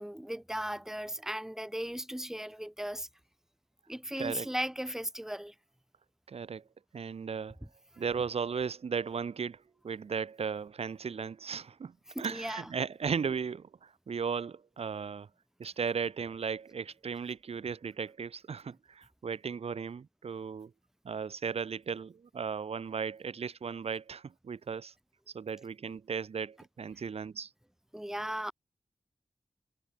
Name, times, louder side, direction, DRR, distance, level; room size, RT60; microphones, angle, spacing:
voice 1, 0.0-3.1 3.9-5.5 12.1-12.7 27.9-28.5, equal, 5° right, 0.6 m, -37 dB
voice 2, 4.2-4.7 6.3-6.6 6.9-7.6 8.0-9.6 9.8-11.9 12.2-15.3 15.6-20.7 21.0-24.9 25.3-27.5, right 6 dB, 65° right, 0.8 m, -36 dB
cardioid pair, 50°, 11 cm